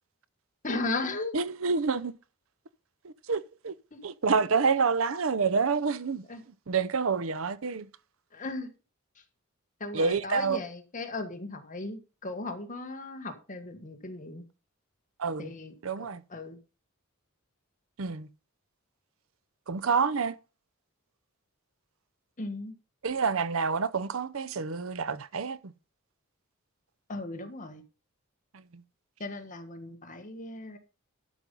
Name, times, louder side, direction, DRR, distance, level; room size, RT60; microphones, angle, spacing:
voice 1, 0.6-1.3 3.9-4.0 6.3-6.4 8.3-8.7 9.8-14.4 15.4-15.7 16.0-16.6 22.4-22.7 27.1-27.8 29.2-30.8, left 2 dB, 40° left, 1.6 m, -36 dB
voice 2, 1.3-2.1 3.0-3.7 4.0-6.2 6.7-7.9 9.9-10.6 15.2-15.5 15.8-16.2 18.0-18.3 19.7-20.4 23.0-25.7 28.5-28.8, right 5 dB, 70° right, 0.7 m, -28 dB
12.0 x 5.4 x 5.4 m
head